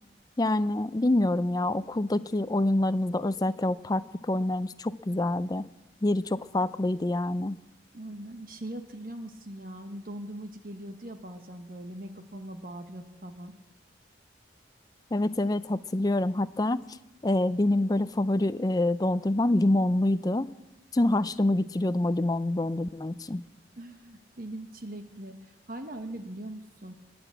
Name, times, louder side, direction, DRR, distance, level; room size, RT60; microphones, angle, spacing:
voice 1, 0.4-5.7 6.0-7.6 15.1-16.8 17.2-20.5 20.9-23.4, left 1 dB, 20° left, 14 dB, 0.4 m, -26 dB
voice 2, 7.9-13.5 23.8-26.9, right 1 dB, 50° right, 7 dB, 1.2 m, -41 dB
21.5 x 7.9 x 8.2 m, 0.97 s
head